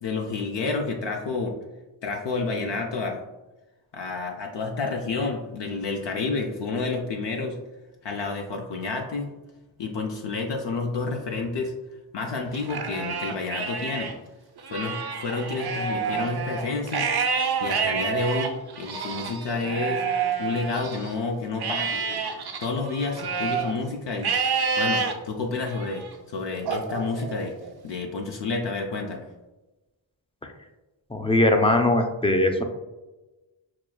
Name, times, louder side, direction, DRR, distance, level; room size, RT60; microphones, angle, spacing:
voice 1, 0.0-1.6 2.0-3.2 3.9-7.6 8.0-9.3 9.8-11.7 12.1-14.1 14.7-17.3 17.6-20.1 20.4-22.2 22.6-24.3 24.8-27.5 27.8-29.3, left 3 dB, 60° left, 1 dB, 0.6 m, -30 dB
Livestock farm animals working animals, 12.5-14.1 14.6-21.1 21.6-23.7 24.2-25.1 25.7-26.1 26.7-27.7, right 5 dB, 50° right, 0.6 m, -28 dB
voice 2, 31.1-32.6, left 1 dB, 10° left, 4 dB, 0.5 m, -20 dB
6.0 x 2.3 x 2.3 m, 1.1 s
cardioid pair, 55°, 49 cm